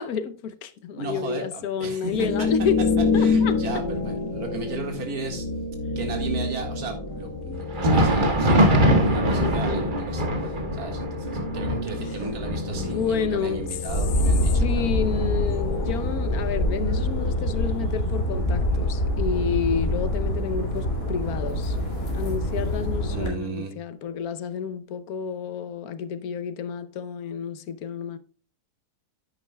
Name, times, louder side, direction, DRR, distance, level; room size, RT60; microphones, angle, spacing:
voice 1, 0.0-2.8 3.1-3.8 9.7-10.0 12.6-13.6 14.5-21.8 22.1-28.2, left 7 dB, 70° left, 1.2 m, -30 dB
voice 2, 1.0-2.5 3.2-5.4 6.0-14.9 23.1-23.7, right 4 dB, 70° right, 2.4 m, -35 dB
sound 1, 2.1-17.9, left 4 dB, 85° left, 2.0 m, -29 dB
Thunder, 7.6-17.0 17.4-17.6 18.2-18.4 19.4-19.5, equal, 30° right, 1.5 m, -24 dB
sound 2, 13.9-23.3, left 1 dB, 40° left, 3.4 m, -25 dB
10.5 x 9.3 x 2.2 m
omnidirectional pair, 1.7 m